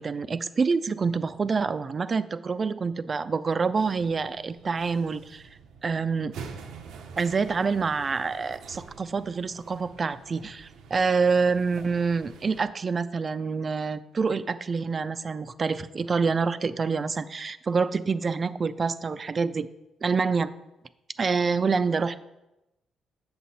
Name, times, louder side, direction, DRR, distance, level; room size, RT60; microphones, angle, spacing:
voice 1, 0.0-5.4 5.8-6.3 7.2-19.7 20.0-20.5 21.2-22.2, right 5 dB, 35° right, 13 dB, 0.4 m, -27 dB
sound 1, 3.8-12.7, right 5 dB, 85° right, 0.7 m, -46 dB
7.7 x 6.7 x 4.1 m, 0.95 s
cardioid pair, 90°, 0 cm